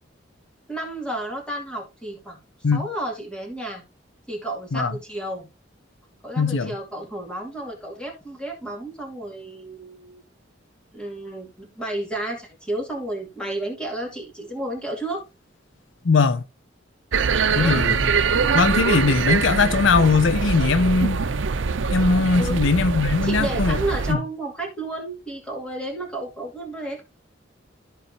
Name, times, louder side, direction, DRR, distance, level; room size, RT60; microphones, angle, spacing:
voice 1, 0.7-2.4 2.7-3.8 4.3-5.5 6.2-10.2 10.9-15.2 17.6-17.8 22.4-22.6 23.2-27.0, right 1 dB, 5° left, 2.4 m, -31 dB
voice 2, 6.4-6.7 16.0-16.4 17.6-18.0 18.5-21.2 21.9-23.8 24.1-24.2, left 4 dB, 80° left, 0.6 m, -20 dB
sound 1, 17.1-24.1, right 5 dB, 75° right, 0.6 m, -23 dB
13.5 x 4.7 x 2.8 m
head